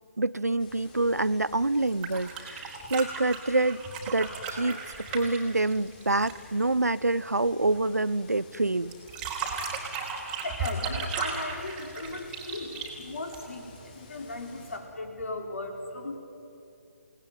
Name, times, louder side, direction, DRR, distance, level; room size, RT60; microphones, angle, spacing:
voice 1, 0.2-3.8 4.1-8.9, right 2 dB, 80° right, 19 dB, 0.8 m, -27 dB
sound 1, 0.6-14.8, left 3 dB, 30° left, 4.7 m, -52 dB
sound 2, 1.8-6.5 8.9-13.8 15.2-15.3, right 4 dB, 15° right, 3.8 m, -35 dB
voice 2, 10.3-16.2, left 2 dB, 55° left, 3 dB, 5.1 m, -37 dB
29.0 x 19.0 x 9.7 m, 2.7 s
figure-of-eight pair, 145°, 9 cm